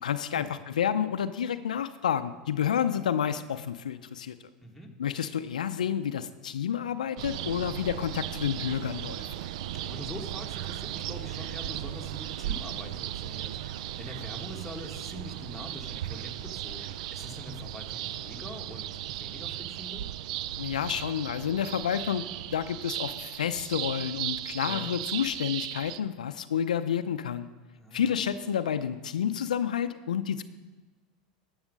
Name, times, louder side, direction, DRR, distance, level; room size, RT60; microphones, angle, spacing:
voice 1, 0.0-4.3 5.0-9.2 20.6-22.3 22.5-27.5 27.9-30.4, left 8 dB, 85° left, 10 dB, 0.5 m, -30 dB
sound 1, 7.2-26.0, right 12 dB, 70° right, 0.4 m, -36 dB
voice 2, 9.7-20.1 24.7-24.9 27.7-28.2, left 1 dB, ahead, 0 dB, 1.8 m, -44 dB
12.5 x 7.1 x 5.2 m, 1.2 s
hypercardioid pair, 95°, 4 cm